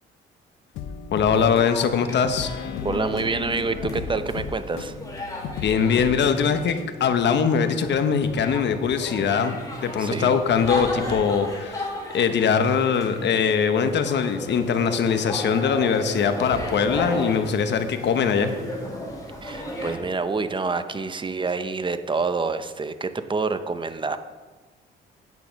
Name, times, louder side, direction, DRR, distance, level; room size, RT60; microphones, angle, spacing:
sound 1, 0.7-6.9, left 7 dB, 85° left, 0.9 m, -35 dB
voice 1, 1.1-2.5 5.6-9.6 9.8-18.5, left 6 dB, 60° left, 9 dB, 1.0 m, -22 dB
sound 2, 1.2-20.0, left 1 dB, 15° left, 3.8 m, -35 dB
voice 2, 2.8-4.9 10.0-10.3 19.4-24.2, right 4 dB, 25° right, 11 dB, 0.7 m, -27 dB
9.3 x 8.2 x 5.3 m, 1.3 s
cardioid pair, 90°, 20 cm